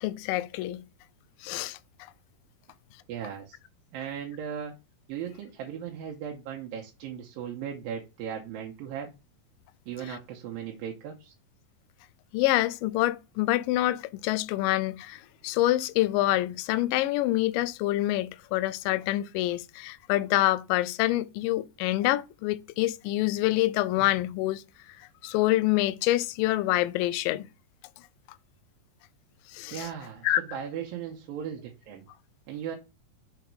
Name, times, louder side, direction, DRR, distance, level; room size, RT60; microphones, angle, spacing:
voice 1, 0.0-0.8 1.4-1.8 10.1-10.2 12.3-24.6 25.2-27.5 29.5-29.9 30.2-30.4, left 16 dB, 80° left, 2.1 m, -26 dB
voice 2, 3.1-3.6 3.9-4.7 5.1-9.1 9.9-11.3 29.7-32.0 32.5-32.8, right 8 dB, 80° right, 2.7 m, -37 dB
6.5 x 3.9 x 4.7 m
omnidirectional pair, 4.2 m